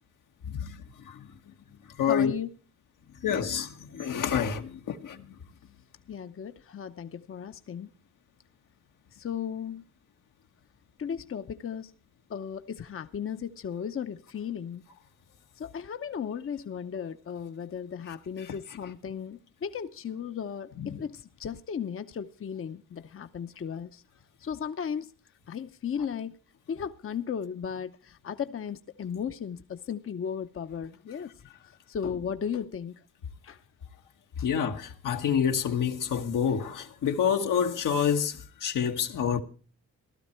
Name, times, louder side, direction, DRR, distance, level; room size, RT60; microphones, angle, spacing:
voice 1, 0.5-1.3 2.0-2.3 3.2-5.4 18.4-18.5 20.8-21.0 34.4-39.4, left 8 dB, 80° left, 1.3 m, -28 dB
voice 2, 2.1-2.5 6.1-7.9 9.2-9.8 11.0-11.9 12.3-14.8 15.6-24.0 24.4-25.1 25.5-26.3 26.7-31.3 31.9-33.0 33.4-33.6, left 7 dB, 45° left, 0.7 m, -35 dB
15.5 x 12.5 x 4.4 m
cardioid pair, 65°, 31 cm